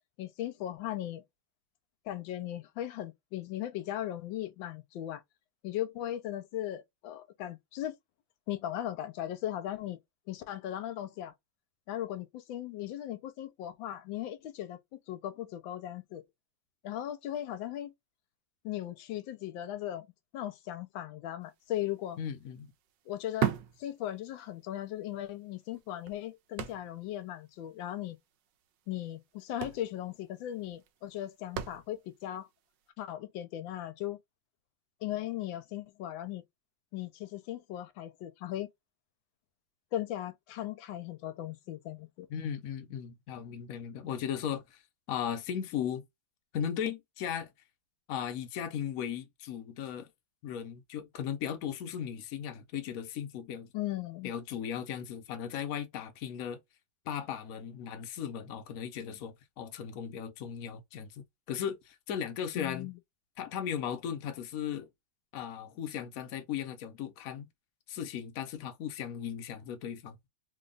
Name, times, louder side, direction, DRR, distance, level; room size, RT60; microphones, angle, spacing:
voice 1, 0.2-1.2 2.1-5.2 5.6-7.9 8.5-10.0 10.3-11.3 11.9-14.8 15.1-16.2 16.8-17.9 18.6-20.1 20.3-22.2 23.1-28.2 28.9-32.5 33.0-34.2 35.0-36.4 36.9-38.7 39.9-42.3 53.7-54.3 62.5-63.0, left 12 dB, 80° left, 1.3 m, -38 dB
sound 1, 21.6-21.8 22.0-24.7 25.0-25.1 25.7-27.2 27.5-27.6 27.8-28.1 29.0-29.1 29.4-32.2 32.8-32.9, right 11 dB, 75° right, 1.2 m, -37 dB
voice 2, 22.2-22.7 42.3-44.8 45.1-46.0 46.5-47.5 48.1-50.1 50.4-53.7 54.2-56.6 57.1-62.9 63.4-64.9 65.3-67.5 67.9-70.2, left 9 dB, 60° left, 1.0 m, -37 dB
3.3 x 2.2 x 3.8 m
omnidirectional pair, 2.1 m